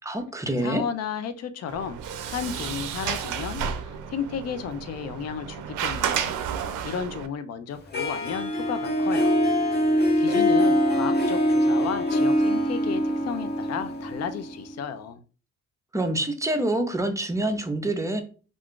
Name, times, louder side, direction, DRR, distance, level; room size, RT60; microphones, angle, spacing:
voice 1, 0.0-0.8 15.9-18.2, right 1 dB, 10° right, 0.5 m, -26 dB
voice 2, 0.6-6.4 6.8-9.4 10.2-15.2, left 7 dB, 60° left, 0.5 m, -33 dB
Sliding door, 1.7-7.3, right 8 dB, 85° right, 0.5 m, -31 dB
Harp, 7.9-14.8, equal, 35° left, 0.8 m, -23 dB
2.5 x 2.3 x 3.6 m
cardioid pair, 90°, 30 cm